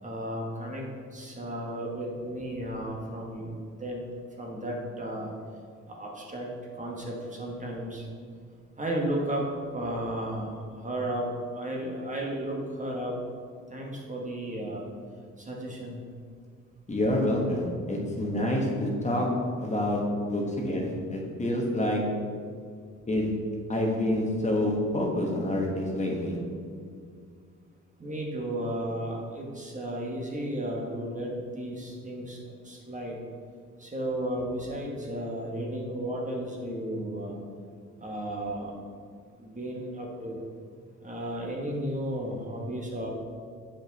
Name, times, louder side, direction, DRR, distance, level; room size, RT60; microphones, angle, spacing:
voice 1, 0.0-3.5 3.8-4.1 4.4-5.3 5.8-8.1 8.8-9.5 9.7-13.2 13.7-14.8 15.4-16.0 28.0-33.2 33.8-37.4 38.0-38.7 39.4-40.4 41.0-43.1, right 1 dB, 25° right, -2 dB, 1.4 m, -34 dB
voice 2, 16.9-22.2 23.1-23.4 23.7-26.4, left 1 dB, 25° left, -1 dB, 1.3 m, -27 dB
7.2 x 5.4 x 4.1 m, 2.1 s
cardioid pair, 90°, 30 cm